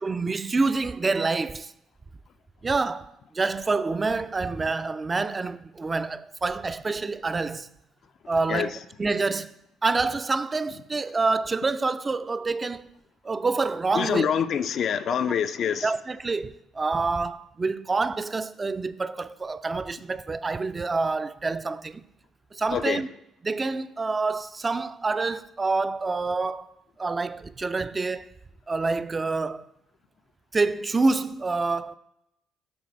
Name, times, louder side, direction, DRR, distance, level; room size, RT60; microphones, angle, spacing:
voice 1, 0.0-1.7 2.6-7.7 8.3-9.5 9.8-12.9 13.2-14.3 15.1-15.2 15.8-22.0 22.5-23.1 23.4-26.7 27.0-28.3 28.7-29.7 30.5-32.0, right 3 dB, 30° right, 0.3 m, -27 dB
voice 2, 13.9-15.9 22.7-23.0, left 8 dB, 55° left, 0.3 m, -25 dB
6.1 x 3.9 x 4.9 m
hypercardioid pair, 50°, 0 cm